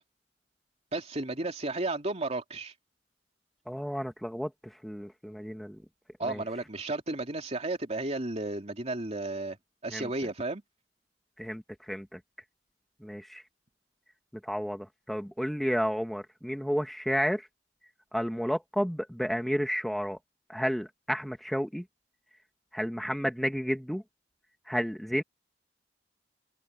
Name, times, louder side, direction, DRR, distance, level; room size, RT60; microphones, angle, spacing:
voice 1, 0.9-2.7 6.2-9.6 9.8-10.6, right 2 dB, 35° right, 3.0 m, -33 dB
voice 2, 3.7-5.8 6.2-6.4 9.9-10.1 11.4-12.2 13.0-13.4 14.4-17.5 18.1-20.2 20.5-21.8 22.7-24.0 24.7-25.2, equal, ahead, 1.4 m, -31 dB
open air
head